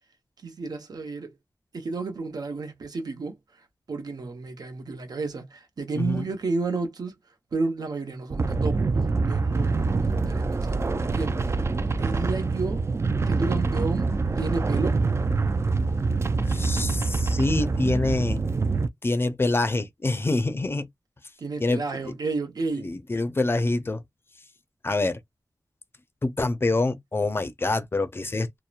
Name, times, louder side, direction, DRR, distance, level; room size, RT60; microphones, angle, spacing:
voice 1, 0.4-1.3 1.7-3.4 3.9-7.1 7.5-8.8 9.3-11.4 11.9-12.8 13.3-15.0 21.4-22.9, right 3 dB, 75° right, 0.8 m, -31 dB
voice 2, 6.0-6.3 16.5-18.4 19.0-20.9 21.6-22.1 22.8-24.0 24.8-25.2 26.2-28.6, left 2 dB, 35° left, 0.5 m, -26 dB
sound 1, 8.3-18.9, right 3 dB, 40° right, 0.3 m, -25 dB
2.8 x 2.0 x 2.3 m
wide cardioid pair, 85°, 7 cm